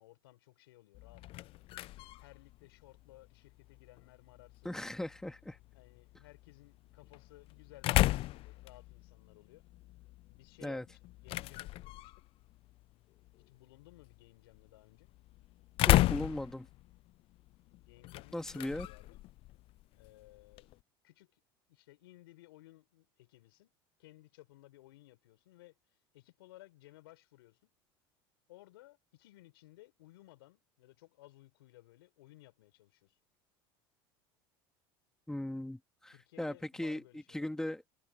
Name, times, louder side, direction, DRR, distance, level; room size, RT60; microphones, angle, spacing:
voice 1, 0.0-1.7 2.2-4.8 5.7-9.6 10.3-12.2 13.5-15.1 17.7-19.3 19.9-20.7 21.0-21.4 21.7-23.7 24.0-25.7 26.1-27.7 28.5-33.2 36.1-37.8, left 17 dB, 85° left, 5.3 m, -59 dB
sound 1, 0.9-20.8, left 17 dB, 50° left, 0.4 m, -36 dB
voice 2, 4.6-5.6 10.6-10.8 15.9-16.7 18.3-18.9 35.3-37.0 37.3-37.8, left 1 dB, 5° left, 2.1 m, -38 dB
supercardioid pair, 100°, 12 cm